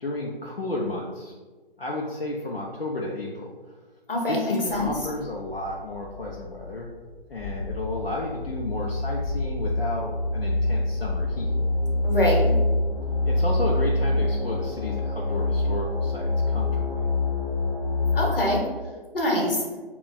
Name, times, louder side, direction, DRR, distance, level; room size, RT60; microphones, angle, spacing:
voice 1, 0.0-1.3 1.8-3.5 4.3-6.9 7.3-11.5 13.2-17.1, left 2 dB, 85° left, -3 dB, 0.6 m, -32 dB
voice 2, 4.1-4.9 12.0-12.5 18.1-18.6 19.1-19.6, left 1 dB, 70° left, -1 dB, 1.1 m, -24 dB
sound 1, 4.7-18.6, left 2 dB, 15° left, 0.7 m, -26 dB
3.2 x 2.3 x 4.0 m, 1.4 s
figure-of-eight pair, 140°, 29 cm